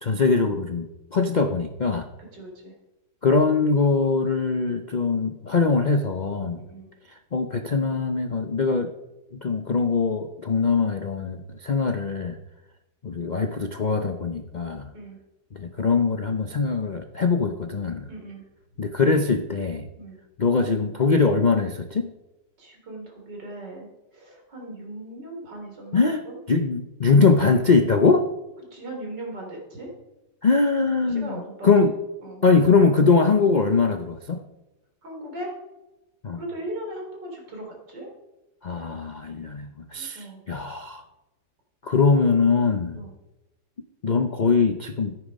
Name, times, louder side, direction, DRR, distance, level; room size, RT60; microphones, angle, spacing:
voice 1, 0.0-2.1 3.2-6.6 7.3-8.9 9.4-12.4 13.0-14.9 15.5-18.1 18.8-19.9 20.4-22.1 25.9-28.3 30.4-31.9 32.4-34.4 36.2-36.4 38.6-41.0 41.8-43.0 44.0-45.2, left 4 dB, 55° left, 6 dB, 0.4 m, -22 dB
voice 2, 2.3-2.7 6.4-6.9 14.9-15.2 18.1-18.4 20.0-20.2 22.6-26.4 28.7-29.9 31.1-31.7 32.2-32.4 35.0-35.5 36.3-38.1 39.9-40.4 42.9-43.1, right 1 dB, 90° right, 0 dB, 3.8 m, -38 dB
14.0 x 9.4 x 5.2 m, 1.0 s
omnidirectional pair, 1.8 m